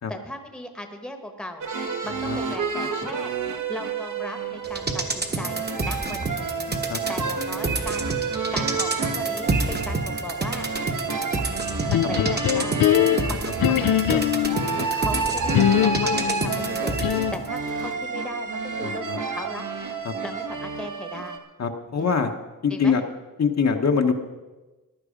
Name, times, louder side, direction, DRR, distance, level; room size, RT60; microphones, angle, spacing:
voice 1, 0.1-1.7 2.0-3.3 3.7-6.5 7.1-8.1 8.5-10.7 11.8-12.8 13.2-14.3 14.9-19.7 20.2-21.4 22.0-22.2 22.7-22.9, left 1 dB, ahead, 6 dB, 1.1 m, -38 dB
sound 1, 1.6-21.4, right 5 dB, 60° right, 1.4 m, -30 dB
voice 2, 2.0-2.4 6.9-7.0 12.2-12.3 13.0-13.4 14.8-14.9 18.8-19.2 20.0-20.1 21.6-22.3 22.6-23.0 23.4-24.1, left 6 dB, 50° left, 4 dB, 1.0 m, -24 dB
sound 2, 4.6-17.5 17.8-17.9, right 3 dB, 30° right, 1.2 m, -29 dB
sound 3, 11.9-14.7 15.5-17.5, left 11 dB, 75° left, 0.5 m, -22 dB
15.0 x 11.0 x 5.1 m, 1.2 s
wide cardioid pair, 165°, 34 cm